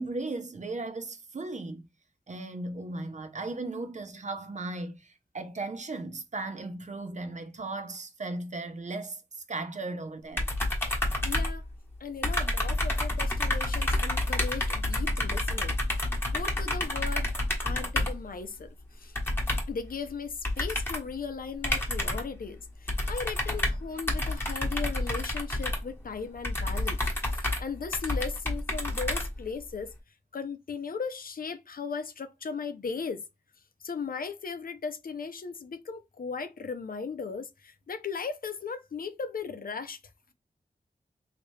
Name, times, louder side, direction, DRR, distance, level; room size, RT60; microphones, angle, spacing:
voice 1, 0.0-1.9 2.3-10.5, right 2 dB, 50° right, 0.6 m, -36 dB
sound 1, 10.4-12.0 12.2-18.3 19.1-19.8 20.4-21.1 21.6-22.4 22.9-29.7, left 1 dB, 15° left, 1.1 m, -29 dB
voice 2, 11.2-11.6 12.0-15.8 16.3-17.3 17.6-18.7 19.0-19.1 19.7-27.0 27.3-29.9 30.3-33.2 33.8-40.0, left 5 dB, 65° left, 0.5 m, -37 dB
3.2 x 2.8 x 3.1 m
wide cardioid pair, 80°, 16 cm